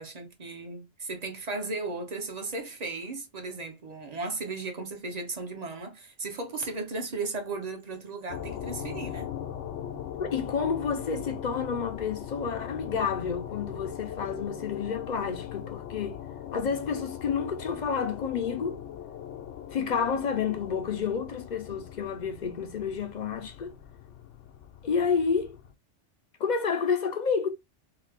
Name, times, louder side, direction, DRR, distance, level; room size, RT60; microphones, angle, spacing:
voice 1, 0.0-9.3, right 3 dB, 40° right, 0.7 m, -36 dB
sound 1, 8.3-25.7, left 10 dB, 80° left, 0.9 m, -40 dB
voice 2, 10.2-16.2 16.5-18.8 19.7-23.7 24.8-25.6 26.4-27.5, left 6 dB, 55° left, 0.5 m, -30 dB
3.4 x 2.7 x 3.5 m
omnidirectional pair, 1.2 m